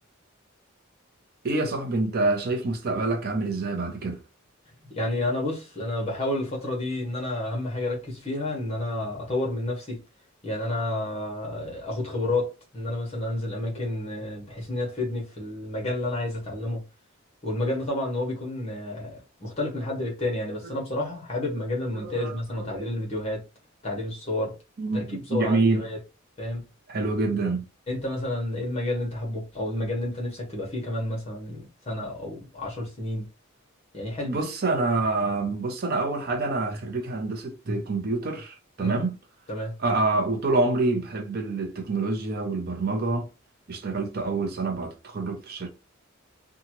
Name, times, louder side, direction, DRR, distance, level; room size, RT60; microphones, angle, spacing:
voice 1, 1.4-4.2 22.0-22.4 22.7-22.9 24.8-25.8 26.9-27.6 34.2-39.1 39.8-43.3 43.7-45.7, right 3 dB, 45° right, 0.5 m, -26 dB
voice 2, 4.9-10.0 10.4-16.8 17.4-23.4 23.8-24.6 24.9-26.0 26.4-26.7 27.9-33.3 33.9-34.4 38.8-39.0 39.5-39.7, left 1 dB, 30° left, 1.1 m, -30 dB
2.8 x 2.3 x 2.9 m
head